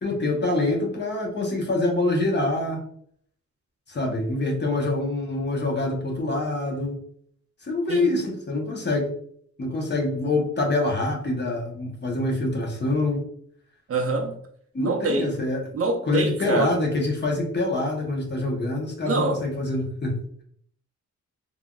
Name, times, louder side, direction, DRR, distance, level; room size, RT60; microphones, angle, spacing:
voice 1, 0.0-2.8 3.9-7.0 7.6-9.1 9.6-13.2 14.7-15.7 16.1-20.2, left 2 dB, 35° left, 0.8 m, -25 dB
voice 2, 13.9-14.4 14.8-15.3 15.7-16.7 19.0-19.4, right 3 dB, 50° right, 0.5 m, -25 dB
3.3 x 2.4 x 2.2 m
wide cardioid pair, 120°, 30 cm